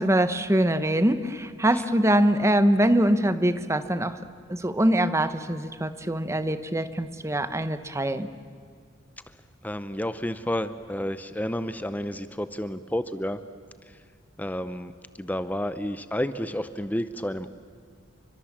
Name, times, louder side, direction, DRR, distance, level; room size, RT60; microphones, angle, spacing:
voice 1, 0.0-4.2 4.5-8.3, right 1 dB, 15° right, 11 dB, 1.0 m, -23 dB
voice 2, 9.6-13.4 14.4-14.9 15.2-17.5, left 1 dB, 10° left, 12 dB, 0.6 m, -30 dB
29.5 x 24.5 x 7.4 m, 2.1 s
head